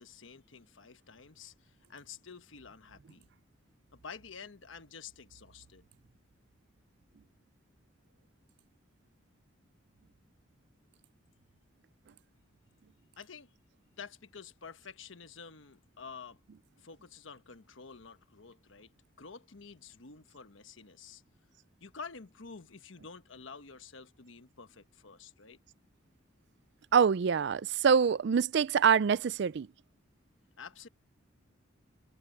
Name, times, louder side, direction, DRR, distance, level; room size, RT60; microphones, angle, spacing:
voice 1, 0.0-3.3 3.9-5.8 13.2-13.5 14.0-16.4 16.8-21.2 21.8-25.6 30.6-30.9, left 5 dB, 75° left, 1.2 m, -49 dB
voice 2, 26.9-29.7, right 6 dB, 60° right, 0.4 m, -25 dB
head